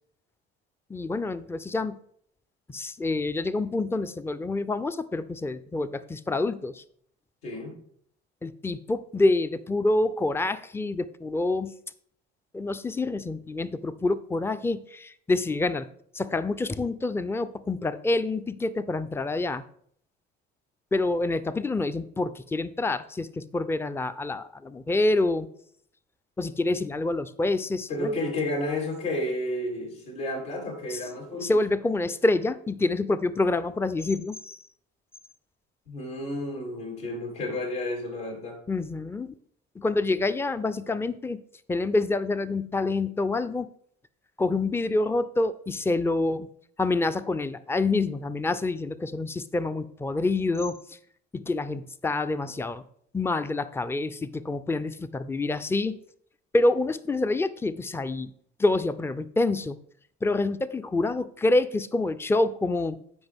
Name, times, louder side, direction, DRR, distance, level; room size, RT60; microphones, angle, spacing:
voice 1, 0.9-2.0 2.7-6.8 8.4-11.7 12.5-15.9 16.1-19.6 20.9-25.5 26.4-28.1 30.9-31.1 31.4-34.6 38.7-39.3 39.8-41.4 41.7-43.7 44.4-46.5 46.8-51.0 51.3-52.8 53.1-56.0 56.5-58.3 58.6-59.8 60.2-63.0, left 2 dB, 10° left, 13 dB, 0.5 m, -27 dB
voice 2, 7.4-7.7 27.9-31.6 35.9-38.6, left 1 dB, 75° left, -2 dB, 4.0 m, -31 dB
14.0 x 5.1 x 3.5 m, 0.65 s
hypercardioid pair, 65°, 29 cm